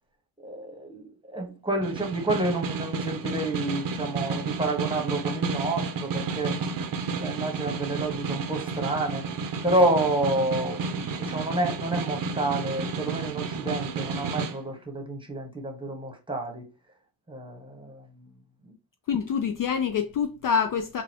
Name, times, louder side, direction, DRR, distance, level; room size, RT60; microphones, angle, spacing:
voice 1, 0.4-6.6 7.2-9.2 9.6-16.6 17.3-18.3 18.6-18.7, right 2 dB, 10° right, 1.2 m, -29 dB
Snare drum, 1.8-14.6, right 4 dB, 45° right, 0.6 m, -31 dB
voice 2, 19.1-21.0, left 6 dB, 45° left, 0.4 m, -26 dB
3.9 x 2.3 x 2.9 m
cardioid pair, 85°, 48 cm